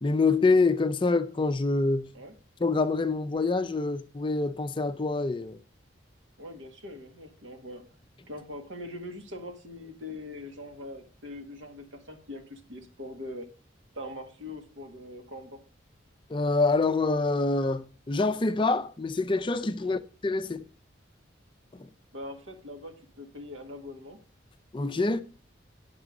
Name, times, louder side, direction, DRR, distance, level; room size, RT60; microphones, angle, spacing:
voice 1, 0.0-2.1 2.6-5.6 16.3-20.7 21.7-21.9 24.7-25.2, left 3 dB, 25° left, 0.4 m, -26 dB
voice 2, 6.4-7.9 8.3-13.5 14.0-15.6 19.8-20.0 22.1-24.2 25.1-25.2, left 1 dB, 85° right, 1.6 m, -42 dB
9.4 x 6.0 x 4.9 m
head